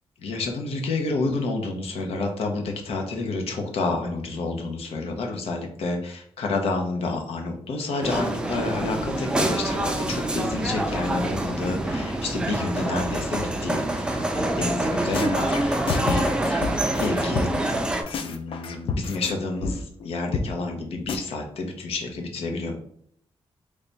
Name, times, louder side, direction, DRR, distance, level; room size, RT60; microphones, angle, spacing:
voice 1, 0.2-17.6 18.2-22.8, left 3 dB, 85° left, 3 dB, 0.7 m, -29 dB
sound 1, 8.0-18.0, right 1 dB, 10° right, 0.3 m, -26 dB
sound 2, 14.8-14.9 15.1-17.8 18.1-19.3 19.6-19.7 20.0-20.1 20.3-20.5 20.7-20.8 21.1-21.2, left 4 dB, 65° left, 0.4 m, -29 dB
3.2 x 2.2 x 3.9 m, 0.65 s
wide cardioid pair, 150°, 10 cm